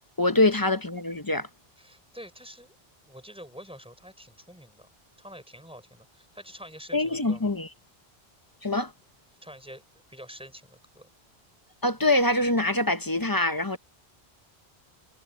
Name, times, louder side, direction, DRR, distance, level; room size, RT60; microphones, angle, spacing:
voice 1, 0.2-1.5 6.9-7.7 8.6-8.9 11.8-13.8, left 2 dB, 25° left, 0.7 m, -24 dB
voice 2, 1.8-2.8 3.0-4.9 5.2-7.5 9.4-9.8 10.1-11.1, equal, 5° right, 4.6 m, -47 dB
omnidirectional pair, 1.1 m